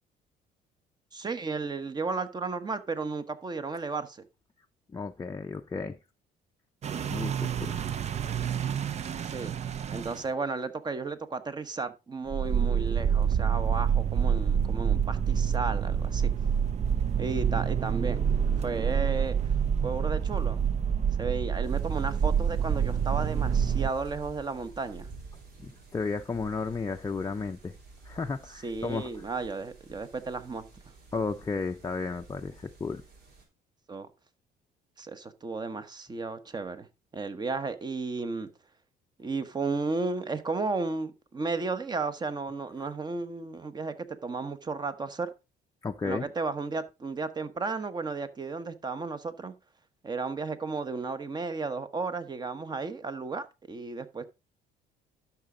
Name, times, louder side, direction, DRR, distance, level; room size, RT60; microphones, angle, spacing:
voice 1, 1.1-4.2 9.2-9.5 9.9-16.3 17.2-18.2 18.6-19.4 19.8-20.6 21.2-25.1 28.6-30.7 33.9-34.1 35.0-36.9 37.1-38.5 39.2-43.9 44.2-45.3 46.0-49.5 50.0-54.2, right 4 dB, 25° right, 1.1 m, -33 dB
voice 2, 4.9-6.0 7.1-7.8 25.6-27.8 28.0-29.1 31.1-33.0 45.8-46.3, left 4 dB, 20° left, 0.5 m, -33 dB
sound 1, 6.8-10.3 12.3-23.9, right 8 dB, 40° right, 0.6 m, -27 dB
sound 2, 21.6-33.4, right 3 dB, 70° right, 3.4 m, -49 dB
12.0 x 6.1 x 3.8 m
cardioid pair, 110°, 17 cm